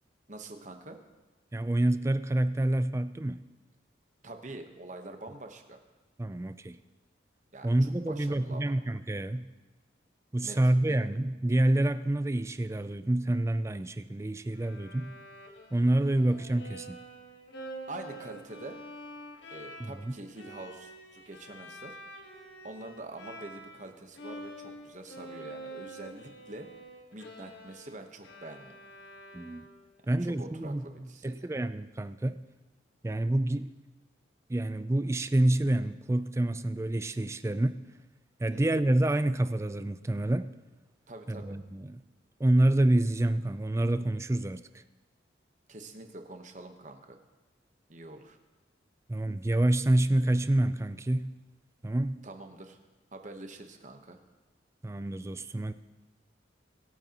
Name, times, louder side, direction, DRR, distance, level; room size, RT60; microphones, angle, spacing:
voice 1, 0.3-1.0 4.2-5.8 7.5-8.7 10.4-11.0 17.9-18.8 19.5-22.0 22.6-26.7 27.1-28.8 30.2-31.5 38.5-38.7 41.1-41.6 45.7-47.2 47.9-48.4 52.2-52.8 53.1-54.2, right 2 dB, 40° right, 1.1 m, -45 dB
voice 2, 1.5-3.4 6.2-6.8 7.6-9.5 10.3-15.1 15.7-17.0 19.8-20.1 29.3-29.7 30.1-32.3 33.0-33.7 34.5-37.7 38.4-40.5 41.3-42.0 42.4-44.6 49.1-51.4 51.8-52.2 54.8-55.7, right 1 dB, 15° right, 0.3 m, -27 dB
Bowed string instrument, 14.5-23.9 24.1-30.0, right 1 dB, 65° left, 1.5 m, -47 dB
24.5 x 9.0 x 3.0 m
head